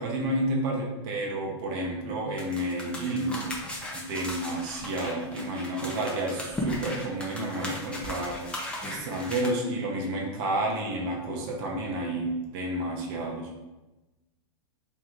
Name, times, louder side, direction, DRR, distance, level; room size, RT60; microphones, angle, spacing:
voice 1, 0.0-3.4 3.9-13.5, right 1 dB, 50° right, -1 dB, 1.0 m, -30 dB
sound 1, 2.4-9.5, left 1 dB, 5° left, 0.8 m, -37 dB
3.2 x 3.1 x 3.7 m, 1.1 s
hypercardioid pair, 120°, 15 cm